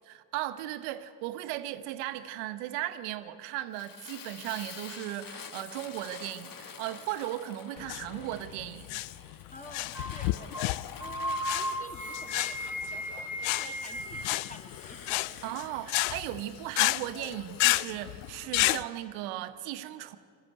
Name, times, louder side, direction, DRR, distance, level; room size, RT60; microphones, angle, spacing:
voice 1, 0.0-9.0 15.4-20.2, right 14 dB, 80° right, 1.1 m, -37 dB
Fire, 3.7-18.4, left 7 dB, 40° left, 1.5 m, -48 dB
sound 1, 7.8-18.8, left 19 dB, 75° left, 0.6 m, -31 dB
voice 2, 9.5-15.2, left 1 dB, 15° left, 2.9 m, -49 dB
sound 2, 9.9-10.2 10.5-10.7 11.0-14.4, equal, ahead, 5.4 m, -36 dB
21.5 x 15.0 x 9.4 m
supercardioid pair, 70°, 49 cm